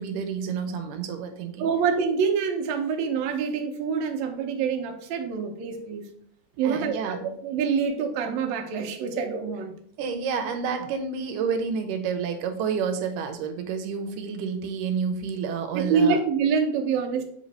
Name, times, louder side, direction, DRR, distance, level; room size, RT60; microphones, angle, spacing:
voice 1, 0.0-1.7 6.6-7.3 10.0-16.2, right 6 dB, 90° right, 6 dB, 2.3 m, -29 dB
voice 2, 1.6-6.0 6.6-9.7 15.7-17.2, right 6 dB, 70° right, 3 dB, 1.9 m, -26 dB
7.7 x 3.1 x 4.0 m, 0.66 s
omnidirectional pair, 3.7 m